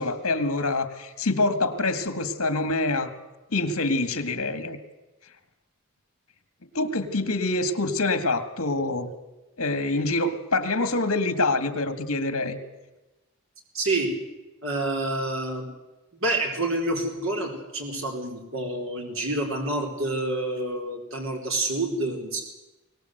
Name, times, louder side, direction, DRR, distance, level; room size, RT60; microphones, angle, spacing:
voice 1, 0.0-3.1 3.5-4.8 6.7-9.1 9.6-12.6, left 2 dB, 75° left, 10 dB, 2.0 m, -25 dB
voice 2, 13.7-14.1 14.6-15.7 16.1-22.4, right 2 dB, 65° right, 1 dB, 4.7 m, -28 dB
23.0 x 18.5 x 8.0 m, 1.1 s
head